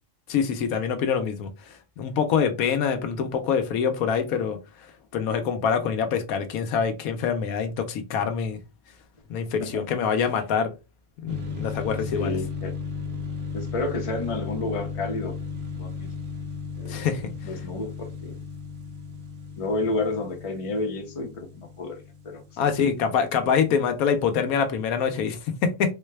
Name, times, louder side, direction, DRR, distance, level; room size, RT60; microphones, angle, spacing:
voice 1, 0.3-4.6 5.1-8.6 9.3-10.7 11.2-12.4 16.9-17.2 22.6-25.9, left 7 dB, 85° left, 1.1 m, -25 dB
sound 1, 11.3-23.7, left 5 dB, 65° right, 1.1 m, -35 dB
voice 2, 12.1-12.7 13.5-15.3 15.8-16.1 16.8-17.2 17.4-18.4 19.6-22.7, left 2 dB, 30° left, 0.7 m, -31 dB
3.8 x 2.2 x 3.2 m
omnidirectional pair, 1.5 m